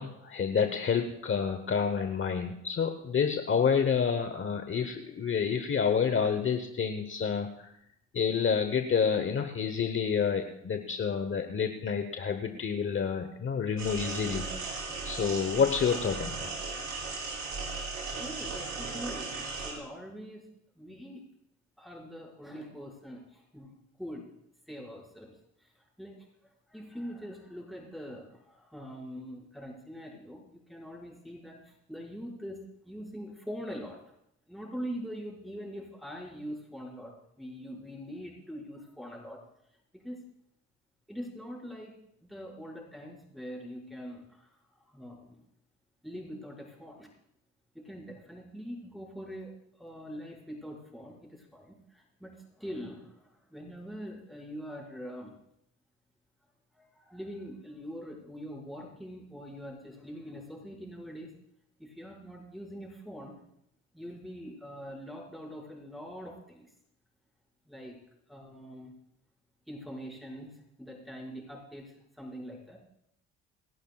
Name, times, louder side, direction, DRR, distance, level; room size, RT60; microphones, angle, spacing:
voice 1, 0.0-7.7 8.1-14.5 15.0-16.5, left 6 dB, 40° left, 7 dB, 1.0 m, -29 dB
sound 1, 13.8-19.7, right 4 dB, 65° right, 4.4 m, -37 dB
voice 2, 18.2-20.4 20.8-21.2 21.8-23.7 24.0-24.3 24.7-25.4 26.0-26.3 26.7-34.0 34.5-39.4 40.0-40.2 41.1-41.9 42.2-44.5 44.9-45.4 46.0-47.1 47.7-55.3 56.7-61.3 61.8-63.4 63.9-66.7 67.7-68.0 68.3-68.9 69.7-70.5 70.8-72.8, equal, ahead, -3 dB, 5.3 m, -43 dB
28.0 x 11.5 x 2.4 m, 0.76 s
cardioid pair, 90°, 30 cm